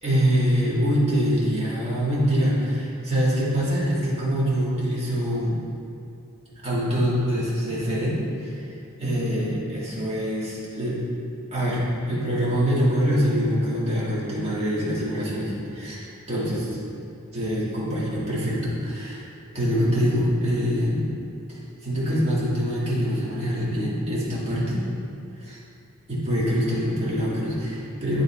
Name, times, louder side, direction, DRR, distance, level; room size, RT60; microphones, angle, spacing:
voice 1, 0.0-5.6 6.6-8.7 9.0-11.0 11.5-16.8 17.3-19.2 19.5-21.0 21.5-24.8 25.4-25.6 26.1-28.2, equal, 30° right, -8 dB, 1.7 m, -24 dB
9.3 x 3.8 x 4.2 m, 2.6 s
head